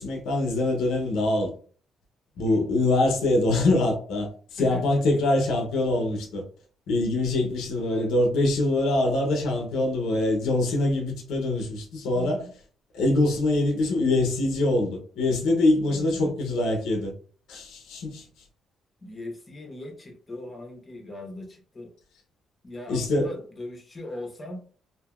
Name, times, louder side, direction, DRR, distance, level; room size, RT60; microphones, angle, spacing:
voice 1, 0.0-1.5 2.4-6.4 6.9-12.4 12.9-17.1 17.5-18.2 22.9-23.3, left 2 dB, 85° left, 0.7 m, -24 dB
voice 2, 7.8-8.2 12.1-12.5 15.8-16.4 19.0-21.9 22.6-24.6, left 1 dB, 30° left, 1.0 m, -39 dB
2.7 x 2.7 x 2.4 m
cardioid pair, 90°, 0 cm